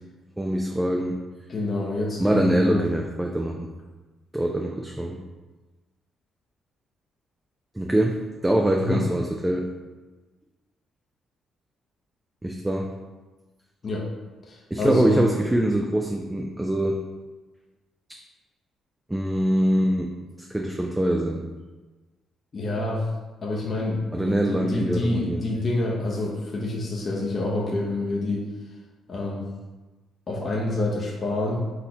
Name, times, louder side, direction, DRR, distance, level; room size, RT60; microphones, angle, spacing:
voice 1, 0.4-1.2 2.2-3.7 4.3-5.2 7.8-9.7 12.4-12.9 14.7-17.0 18.1-18.2 19.1-20.1 20.4-21.4 24.1-25.4, right 1 dB, 10° right, 1 dB, 0.4 m, -24 dB
voice 2, 1.5-2.8 8.8-9.0 13.8-14.0 14.5-15.3 22.5-23.0 23.4-28.4 29.1-29.4 30.3-31.7, left 2 dB, 40° left, -3 dB, 0.7 m, -27 dB
4.1 x 3.7 x 2.8 m, 1.2 s
cardioid pair, 90°, 0 cm